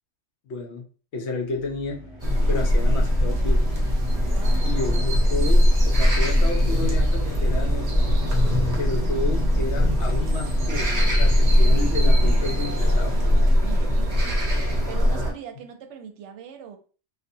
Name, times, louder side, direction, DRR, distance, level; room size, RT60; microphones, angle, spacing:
voice 1, 0.5-0.8 1.1-2.0 2.5-3.6 4.6-8.0 8.8-10.9 11.2-13.1, left 3 dB, 65° left, 0.9 m, -31 dB
sound 1, 1.5-13.3, right 3 dB, 40° left, 1.0 m, -37 dB
sound 2, 2.2-15.3, equal, 40° right, 0.7 m, -20 dB
voice 2, 4.2-4.7 13.6-14.2 14.9-16.8, right 8 dB, 70° right, 0.8 m, -40 dB
2.7 x 2.3 x 2.6 m
omnidirectional pair, 1.3 m